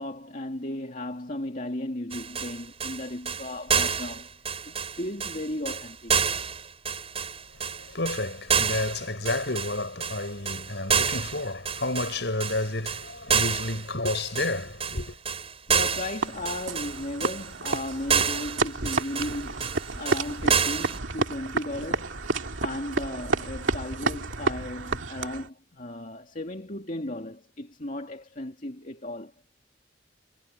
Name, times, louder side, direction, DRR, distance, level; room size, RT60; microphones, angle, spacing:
voice 1, 0.0-4.3 4.7-6.1 15.7-22.2 22.6-29.3, left 1 dB, 45° left, 2.5 m, -35 dB
sound 1, 2.1-21.0, right 6 dB, 30° right, 4.7 m, -29 dB
voice 2, 7.9-15.2, left 2 dB, 65° left, 5.7 m, -30 dB
sound 2, 16.2-25.5, right 3 dB, 90° right, 2.4 m, -30 dB
head